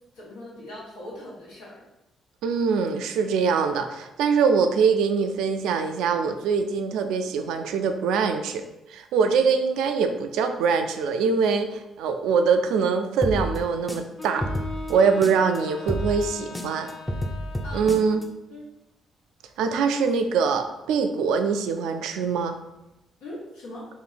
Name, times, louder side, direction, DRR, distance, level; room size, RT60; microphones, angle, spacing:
voice 1, 0.1-1.8 17.6-17.9 18.5-18.6 23.2-23.9, left 1 dB, 85° left, -7 dB, 1.3 m, -40 dB
voice 2, 2.4-8.6 8.9-14.5 14.9-16.9 17.7-18.2 19.6-22.6, right 5 dB, 75° right, 7 dB, 0.3 m, -23 dB
sound 1, 13.2-15.6 15.9-18.2, equal, 10° left, 0.5 m, -30 dB
Wind instrument woodwind instrument, 14.2-18.3, left 2 dB, 45° left, 1.3 m, -40 dB
3.0 x 2.6 x 4.0 m, 0.93 s
hypercardioid pair, 45°, 0 cm